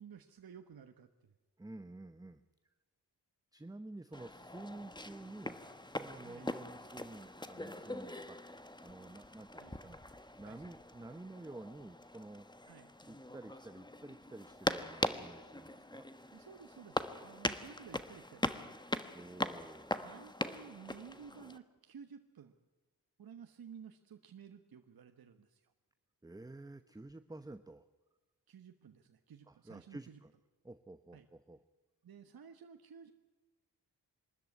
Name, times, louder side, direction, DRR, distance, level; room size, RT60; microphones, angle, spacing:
voice 1, 0.0-1.3 6.2-6.5 9.6-9.8 10.4-10.7 12.7-12.9 16.3-18.7 20.0-22.5 23.2-25.7 28.5-30.2 31.1-31.3 32.0-33.1, right 7 dB, 55° right, 7 dB, 1.3 m, -54 dB
voice 2, 1.6-2.4 3.5-5.6 6.0-8.4 8.8-10.0 10.4-12.4 13.1-16.1 19.1-20.3 26.2-27.8 29.5-30.3 30.6-31.6, right 2 dB, 10° right, 11 dB, 0.9 m, -50 dB
sound 1, 4.1-21.6, left 1 dB, 10° left, 1.4 m, -41 dB
23.5 x 13.0 x 9.6 m, 1.2 s
supercardioid pair, 45°, 43 cm